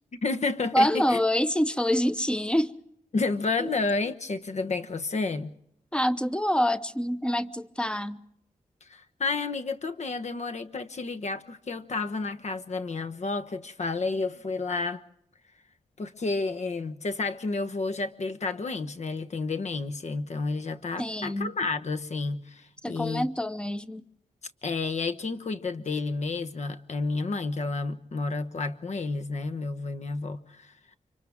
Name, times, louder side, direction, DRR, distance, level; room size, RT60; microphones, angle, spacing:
voice 1, 0.2-1.2 3.1-5.5 8.8-15.0 16.0-23.3 24.6-31.0, left 3 dB, 55° left, 1.2 m, -31 dB
voice 2, 0.7-2.7 3.6-3.8 5.9-8.2 21.0-21.5 22.8-24.0, equal, 5° left, 0.8 m, -26 dB
29.5 x 25.5 x 3.6 m
wide cardioid pair, 120°, 14 cm